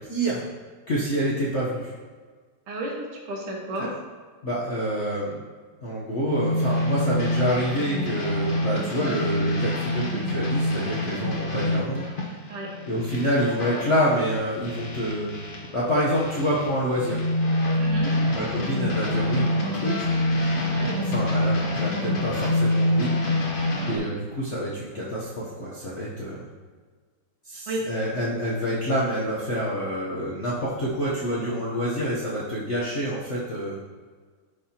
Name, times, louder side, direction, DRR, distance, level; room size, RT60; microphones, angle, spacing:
voice 1, 0.1-0.5 0.9-1.9 3.8-3.9 4.4-5.4 5.8-12.1 12.9-15.3 15.7-17.2 18.3-20.1 20.9-23.1 23.9-26.5 27.4-33.8, equal, 55° left, -7 dB, 0.8 m, -27 dB
voice 2, 2.7-3.9 12.5-12.7 17.8-18.2 20.7-21.0 27.7-27.9, right 1 dB, 90° right, -2 dB, 2.3 m, -32 dB
sound 1, 6.3-15.7 16.1-24.0, left 1 dB, 85° left, 0.4 m, -26 dB
11.5 x 4.3 x 2.8 m, 1.5 s
omnidirectional pair, 2.4 m